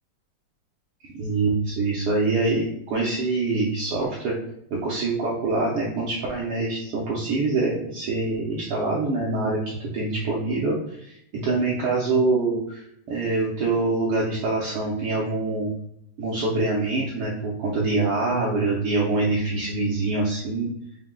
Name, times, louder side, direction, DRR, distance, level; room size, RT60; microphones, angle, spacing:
voice 1, 1.1-4.4 4.7-12.8 13.1-15.7 16.2-20.7, right 3 dB, 70° right, -4 dB, 1.3 m, -25 dB
5.7 x 2.2 x 3.6 m, 0.73 s
omnidirectional pair, 3.4 m